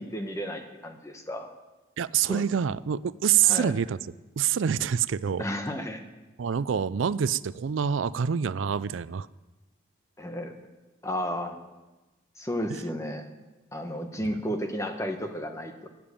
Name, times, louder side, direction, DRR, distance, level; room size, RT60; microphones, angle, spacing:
voice 1, 0.0-1.5 2.3-2.4 3.4-3.7 5.4-6.0 10.2-10.5 11.0-11.6 12.4-13.3 13.7-15.9, equal, 15° left, 6 dB, 1.2 m, -33 dB
voice 2, 2.0-4.0 4.4-5.5 6.4-9.3, right 8 dB, 85° right, 17 dB, 0.4 m, -26 dB
13.0 x 8.9 x 8.5 m, 1.1 s
head